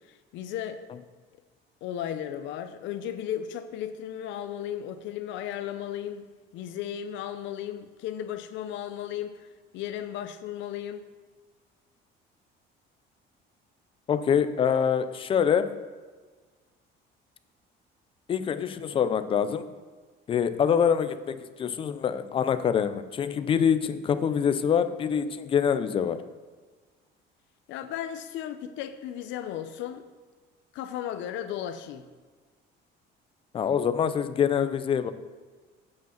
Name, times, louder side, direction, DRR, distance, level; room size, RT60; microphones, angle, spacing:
voice 1, 0.1-0.8 1.8-6.3 6.5-9.5 9.7-11.0 27.7-30.1 30.7-32.1, left 10 dB, 70° left, 10 dB, 0.6 m, -35 dB
voice 2, 14.1-15.7 18.3-19.7 20.3-26.2 33.5-35.1, left 7 dB, 25° left, 11 dB, 0.4 m, -25 dB
8.2 x 5.0 x 7.4 m, 1.4 s
cardioid pair, 170°, 20 cm